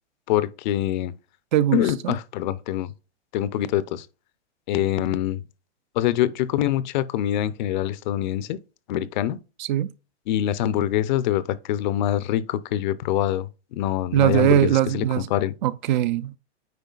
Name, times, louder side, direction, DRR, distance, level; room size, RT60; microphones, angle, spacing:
voice 1, 0.3-1.1 1.7-2.9 3.3-4.1 4.7-5.4 6.0-8.6 8.9-9.4 10.3-14.7 14.9-15.0 15.3-15.5, left 12 dB, 45° left, 0.5 m, -24 dB
voice 2, 1.5-2.2 9.6-9.9 14.1-15.3 15.6-16.4, right 12 dB, 45° right, 0.4 m, -21 dB
9.2 x 4.8 x 2.3 m
hypercardioid pair, 135°, 34 cm